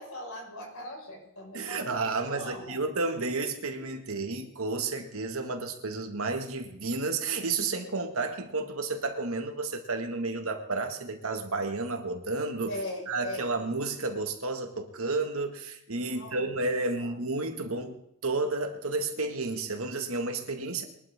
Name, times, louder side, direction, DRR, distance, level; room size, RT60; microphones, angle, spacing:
voice 1, 0.0-2.8 3.8-3.9 12.7-13.5 16.0-16.5 17.0-17.2, left 1 dB, 75° left, 5.3 m, -40 dB
voice 2, 1.5-12.7 13.1-18.0 18.2-20.8, right 3 dB, 75° right, 2.0 m, -31 dB
22.5 x 12.0 x 3.7 m
head